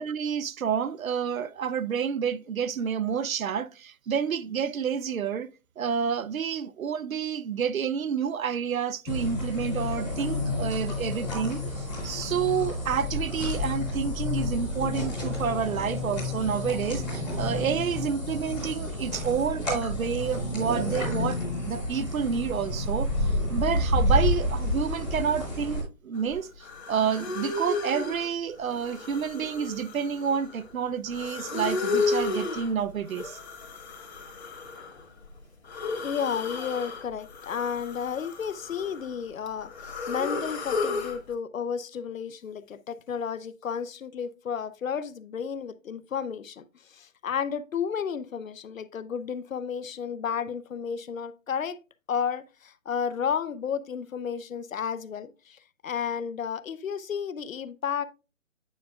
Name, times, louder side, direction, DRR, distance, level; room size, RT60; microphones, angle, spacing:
voice 1, 0.0-5.5 5.8-21.4 21.6-33.4, right 7 dB, 80° right, 0.7 m, -29 dB
sound 1, 9.1-25.8, left 2 dB, 5° left, 0.9 m, -30 dB
sound 2, 26.3-26.4 26.6-28.3 28.7-30.7 31.1-32.7 33.1-35.0 35.6-37.0 37.3-39.1 39.5-41.2, left 4 dB, 50° left, 1.7 m, -33 dB
voice 2, 36.0-51.8 52.1-58.1, left 7 dB, 75° left, 0.7 m, -32 dB
9.2 x 5.3 x 2.3 m
hypercardioid pair, 165°, 41 cm